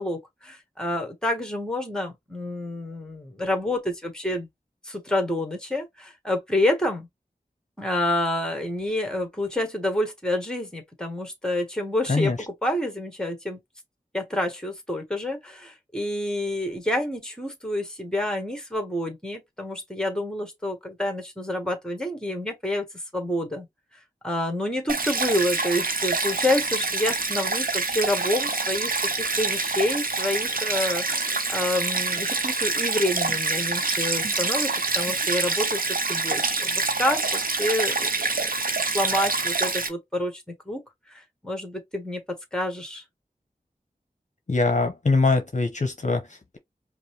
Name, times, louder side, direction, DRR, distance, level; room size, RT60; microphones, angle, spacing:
voice 1, 0.0-4.5 4.8-7.1 7.8-13.6 14.1-22.9 23.1-23.7 24.2-38.5 38.8-40.8 41.1-43.0, left 1 dB, 5° left, 1.5 m, -28 dB
Stream, 24.9-39.9, right 3 dB, 65° right, 0.8 m, -26 dB
voice 2, 44.5-46.6, left 3 dB, 50° left, 0.7 m, -23 dB
5.2 x 2.0 x 3.1 m
wide cardioid pair, 65°, 15 cm